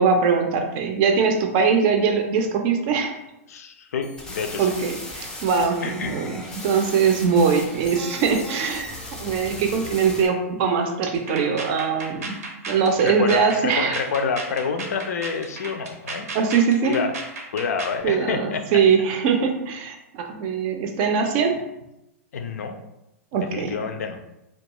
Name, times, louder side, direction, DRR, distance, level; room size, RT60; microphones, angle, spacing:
voice 1, 0.0-3.1 4.6-12.3 12.7-14.0 16.3-17.0 18.0-21.6 23.3-23.8, right 6 dB, 45° right, 4 dB, 0.4 m, -22 dB
voice 2, 3.5-4.7 5.8-6.4 13.0-16.3 16.8-17.1 17.5-18.8 22.3-22.8 23.4-24.2, left 5 dB, 80° left, 6 dB, 0.4 m, -28 dB
sound 1, 4.0-10.3, left 1 dB, 10° left, 0.5 m, -37 dB
sound 2, 11.1-18.0, right 3 dB, 80° right, 0.7 m, -35 dB
2.3 x 2.2 x 2.9 m, 0.89 s
hypercardioid pair, 125°, 8 cm